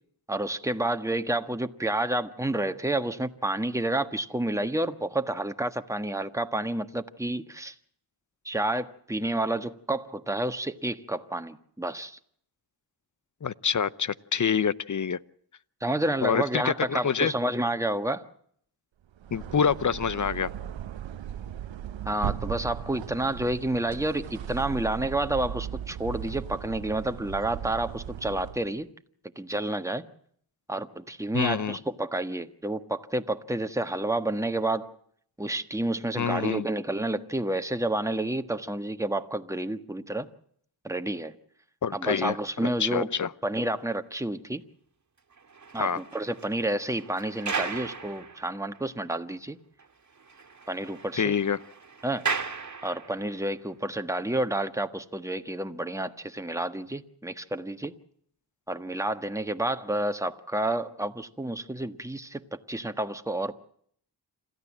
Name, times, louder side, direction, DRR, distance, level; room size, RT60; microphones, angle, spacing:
voice 1, 0.3-7.7 8.4-12.2 15.8-18.2 22.0-28.9 29.3-30.0 30.7-34.9 35.4-40.3 40.8-41.3 41.9-43.1 43.4-44.6 45.7-49.6 50.7-51.3 52.0-52.2 52.8-57.9 58.7-63.5, right 1 dB, 5° right, 1.5 m, -30 dB
voice 2, 13.4-15.2 16.2-17.3 19.3-20.5 31.3-31.8 36.2-36.6 41.8-42.4 42.8-43.3 45.8-46.0 51.2-51.6, left 7 dB, 40° left, 0.8 m, -26 dB
sound 1, 19.1-28.7, right 10 dB, 85° right, 0.9 m, -37 dB
sound 2, 45.3-49.0 49.3-49.4 49.8-49.9 50.2-53.4 54.1-54.3, right 5 dB, 40° right, 2.1 m, -37 dB
27.0 x 13.5 x 7.4 m
cardioid pair, 60°, 45 cm